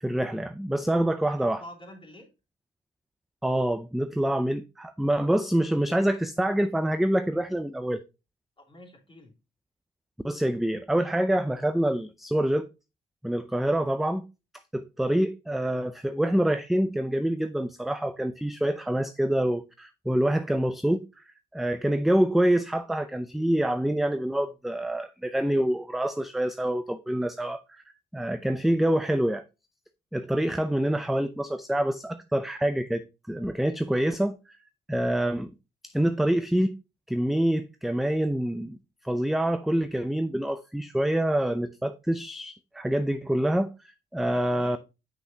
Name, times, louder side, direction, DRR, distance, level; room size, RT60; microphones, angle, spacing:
voice 1, 0.0-1.6 3.4-8.0 10.2-12.7 13.2-14.2 14.7-21.0 21.5-27.8 28.1-29.4 30.1-34.4 34.9-35.5 35.8-36.7 37.1-38.8 39.0-43.7 44.1-44.8, right 1 dB, ahead, 0.5 m, -26 dB
voice 2, 1.2-2.3 8.6-9.3 44.2-44.8, left 1 dB, 25° left, 3.1 m, -48 dB
8.1 x 5.7 x 2.8 m
cardioid pair, 90°, 20 cm